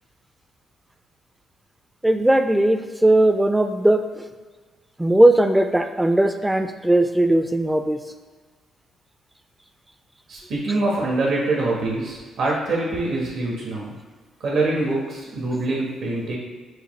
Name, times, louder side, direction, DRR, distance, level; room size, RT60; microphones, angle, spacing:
voice 1, 2.0-4.3 5.0-8.0, right 1 dB, 10° right, 7 dB, 0.3 m, -18 dB
voice 2, 10.3-13.9 14.4-16.4, right 2 dB, 70° right, -3 dB, 1.3 m, -24 dB
6.4 x 2.3 x 3.2 m, 1.4 s
cardioid pair, 90°, 0 cm